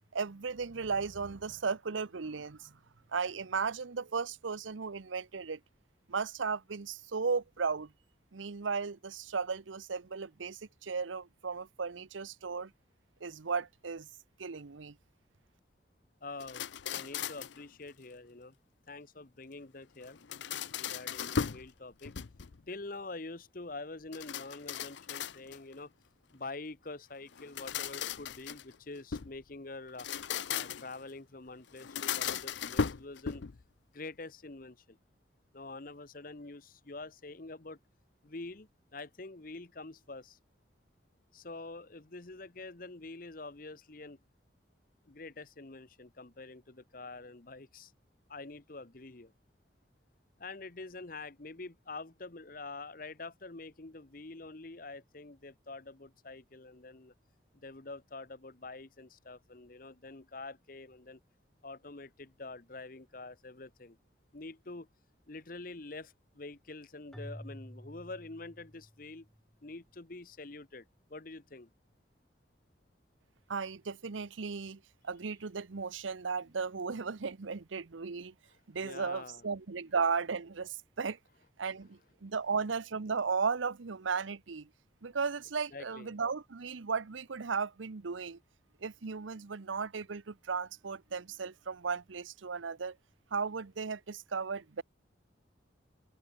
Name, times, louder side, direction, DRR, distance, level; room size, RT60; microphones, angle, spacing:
voice 1, 0.1-2.8 3.1-5.6 6.1-7.9 8.3-12.7 13.2-14.1 14.4-14.9 73.5-78.3 78.7-81.2 81.6-84.7 85.0-88.4 88.8-93.0 93.3-94.8, right 5 dB, 90° right, 0.8 m, -35 dB
voice 2, 16.2-18.6 18.9-20.2 20.8-22.1 22.7-25.9 26.3-30.1 30.5-33.4 33.9-35.0 35.5-37.8 38.2-40.4 41.3-44.2 45.1-47.9 48.3-49.3 50.4-57.1 57.6-61.2 61.6-64.0 64.3-64.9 65.3-69.3 69.6-70.8 71.1-71.7 78.8-79.5 85.7-86.1, left 3 dB, 45° left, 1.0 m, -46 dB
sound 1, 16.4-17.6 20.0-21.7 22.0-22.6 24.1-25.7 27.3-29.4 29.9-31.0 31.8-33.6, left 7 dB, 75° left, 0.6 m, -37 dB
Keyboard (musical), 67.1-69.4, equal, ahead, 2.3 m, -49 dB
head